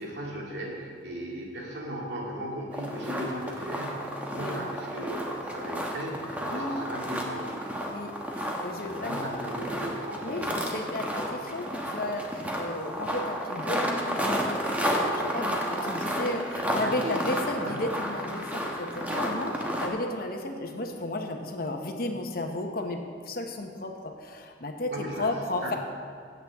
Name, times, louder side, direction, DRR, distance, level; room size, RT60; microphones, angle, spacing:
voice 1, 0.0-7.6 8.8-10.9 11.4-11.5 16.5-17.2 17.5-17.9 24.9-25.3 25.6-25.8, equal, 75° right, -4 dB, 2.5 m, -37 dB
sound 1, 2.7-19.9, equal, 10° right, 1.1 m, -31 dB
voice 2, 6.5-6.9 7.9-9.5 10.2-25.8, left 2 dB, 55° left, 4 dB, 1.0 m, -34 dB
14.5 x 8.4 x 3.5 m, 2.2 s
head